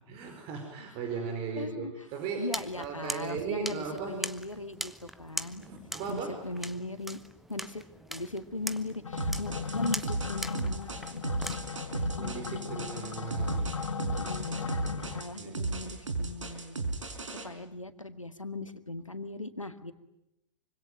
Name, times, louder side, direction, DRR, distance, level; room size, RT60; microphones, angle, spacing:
voice 1, 0.1-4.3 5.5-6.6 12.2-13.7 14.8-15.7, right 5 dB, 35° right, 5 dB, 4.6 m, -38 dB
voice 2, 1.6-1.9 2.4-5.6 6.1-7.2 7.5-11.3 14.0-14.7 15.1-16.9 17.4-19.9, left 2 dB, 85° left, 10 dB, 2.0 m, -38 dB
sound 1, 2.5-11.6, right 1 dB, ahead, 1.0 m, -41 dB
sound 2, 9.0-15.2, left 6 dB, 70° left, 1.3 m, -37 dB
sound 3, 9.2-17.4, right 3 dB, 75° right, 5.0 m, -35 dB
25.5 x 25.0 x 9.2 m, 0.86 s
figure-of-eight pair, 100°, 16 cm